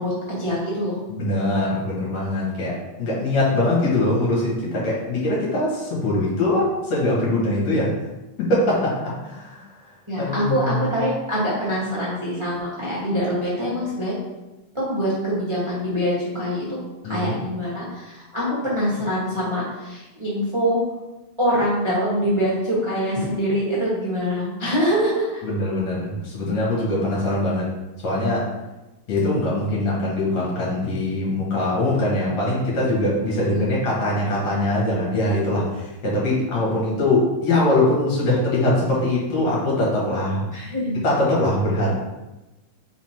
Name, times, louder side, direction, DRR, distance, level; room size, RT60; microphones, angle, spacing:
voice 1, 0.0-1.0 10.1-14.1 14.7-16.6 17.0-20.8 21.4-25.4 33.5-33.7 40.5-41.0, equal, 35° right, -7 dB, 0.4 m, -24 dB
voice 2, 1.1-7.9 8.4-8.9 9.2-9.6 10.2-10.9 17.0-17.4 25.4-27.7 28.0-28.5 29.1-40.4 41.0-41.9, left 1 dB, 65° left, -5 dB, 2.9 m, -22 dB
5.0 x 4.3 x 4.5 m, 1.0 s
omnidirectional pair, 3.3 m